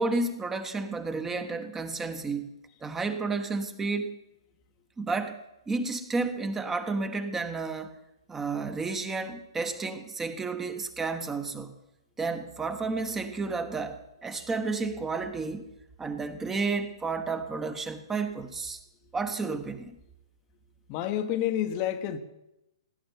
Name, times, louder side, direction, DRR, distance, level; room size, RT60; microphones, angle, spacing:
voice 1, 0.0-2.5 2.8-4.1 5.0-5.4 5.7-8.0 8.3-11.7 12.2-15.6 16.0-18.8 19.1-19.9, right 3 dB, 10° right, 1.3 m, -31 dB
voice 2, 20.9-22.2, left 11 dB, 35° left, 1.2 m, -29 dB
17.5 x 10.0 x 7.3 m
figure-of-eight pair, 120°, 3 cm